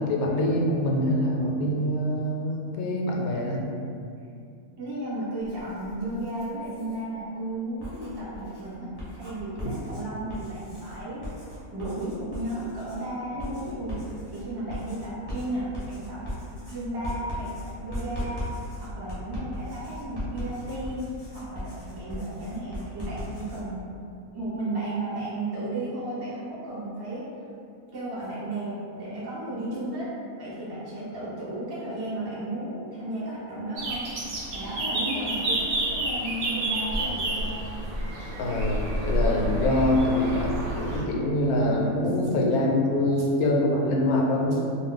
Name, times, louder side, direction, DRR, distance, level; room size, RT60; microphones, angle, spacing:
voice 1, 0.1-3.7 9.6-9.7 38.4-44.6, left 1 dB, 85° left, -1 dB, 1.0 m, -25 dB
voice 2, 4.8-11.2 11.7-14.0 14.3-16.2 16.7-18.4 18.8-21.0 21.3-23.9 24.3-27.3 27.9-30.1 30.4-34.1 34.5-37.6, right 1 dB, 25° right, -9 dB, 0.5 m, -34 dB
Writing, 5.4-7.0 7.6-23.6, equal, 25° left, 0.6 m, -38 dB
sound 1, 33.8-41.0, right 1 dB, 75° right, 0.5 m, -29 dB
2.5 x 2.3 x 3.7 m, 2.4 s
omnidirectional pair, 1.5 m